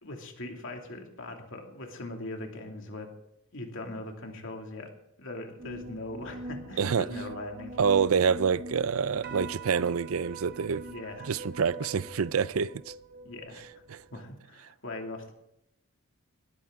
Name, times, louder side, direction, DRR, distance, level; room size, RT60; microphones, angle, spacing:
voice 1, 0.0-3.1 3.5-4.9 5.2-7.8 10.9-11.3 13.2-13.6 14.1-15.3, left 2 dB, 60° left, 2.5 m, -40 dB
sound 1, 5.6-14.2, right 2 dB, 45° right, 1.1 m, -43 dB
voice 2, 7.8-10.8 11.2-12.9 13.9-14.0, right 6 dB, 70° right, 0.5 m, -27 dB
18.5 x 13.5 x 3.7 m
head